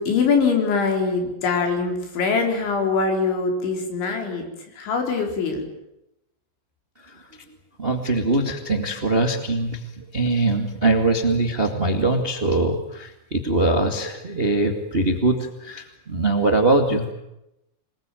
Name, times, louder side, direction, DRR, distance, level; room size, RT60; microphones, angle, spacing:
voice 1, 0.0-4.5 4.7-5.7, left 4 dB, 90° left, 3 dB, 6.6 m, -23 dB
voice 2, 7.8-17.1, right 2 dB, 30° right, 5 dB, 1.0 m, -22 dB
26.0 x 20.5 x 9.1 m, 0.86 s
omnidirectional pair, 5.1 m